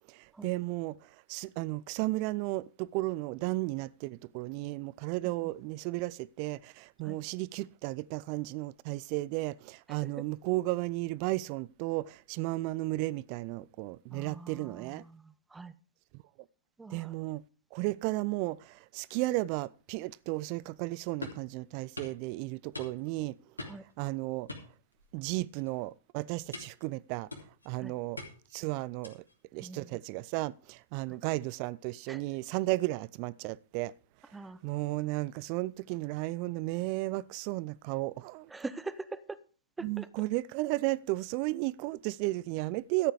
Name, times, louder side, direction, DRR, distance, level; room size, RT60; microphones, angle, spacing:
voice 1, 0.1-15.0 16.1-16.2 16.9-17.4 17.7-23.4 24.0-24.5 25.1-27.3 27.7-28.2 28.5-29.2 29.5-33.9 34.6-38.5 39.8-43.1, right 20 dB, 45° right, 0.5 m, -34 dB
voice 2, 14.1-15.7 16.8-17.1 23.6-23.8 27.8-27.9 29.6-30.0 32.1-32.2 34.3-34.6 38.5-39.4 39.8-40.1, right 3 dB, 10° right, 1.0 m, -43 dB
sound 1, 21.2-21.5 22.0-22.2 22.7-23.2 23.6-23.9 24.5-25.3 25.6-25.8 26.5-26.9 27.3-27.7 28.2-28.6 29.0-29.4, left 2 dB, 85° left, 3.2 m, -43 dB
13.0 x 8.9 x 4.9 m
figure-of-eight pair, 100°, 0 cm